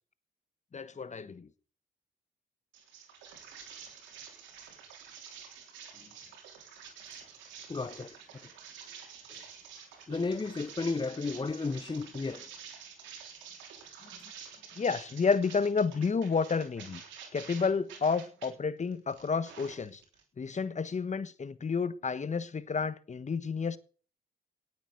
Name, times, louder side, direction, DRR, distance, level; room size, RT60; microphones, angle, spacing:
voice 1, 0.7-1.5 6.0-6.1 14.7-17.0 17.3-20.0 20.4-23.8, left 5 dB, 40° left, 1.3 m, -30 dB
sound 1, 2.7-18.5 18.9-20.2, right 7 dB, 90° right, 3.5 m, -49 dB
voice 2, 7.7-8.5 9.3-9.5 9.8-12.5, left 3 dB, 25° left, 0.8 m, -34 dB
18.0 x 8.2 x 6.6 m
supercardioid pair, 55°, 18 cm